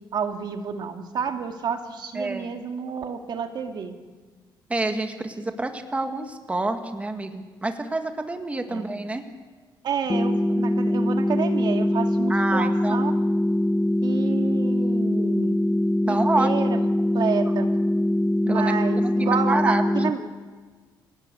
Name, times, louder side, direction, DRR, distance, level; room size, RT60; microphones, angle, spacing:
voice 1, 0.1-3.9 8.7-8.8 9.8-13.1 14.0-15.6 16.0-16.8 17.1-17.7 18.4-20.2, right 6 dB, 60° right, 5 dB, 2.2 m, -29 dB
voice 2, 2.1-2.5 4.7-9.2 12.3-13.1 16.1-16.5 18.5-19.8 20.2-20.3, right 2 dB, 15° right, 5 dB, 1.8 m, -28 dB
sound 1, 10.1-20.1, left 1 dB, 15° left, 1.0 m, -23 dB
27.5 x 17.5 x 8.4 m, 1.4 s
cardioid pair, 120°, 8 cm